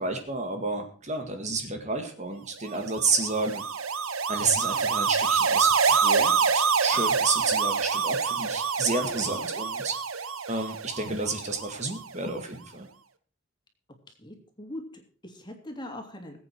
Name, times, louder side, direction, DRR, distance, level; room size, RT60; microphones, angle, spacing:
voice 1, 0.0-3.6 4.3-10.0 10.5-12.9, right 3 dB, 35° right, 5 dB, 2.0 m, -30 dB
sound 1, 2.8-12.0, right 5 dB, 85° right, 1.2 m, -26 dB
voice 2, 14.2-16.4, left 1 dB, 20° left, 3 dB, 3.0 m, -41 dB
20.5 x 8.7 x 4.5 m, 0.41 s
head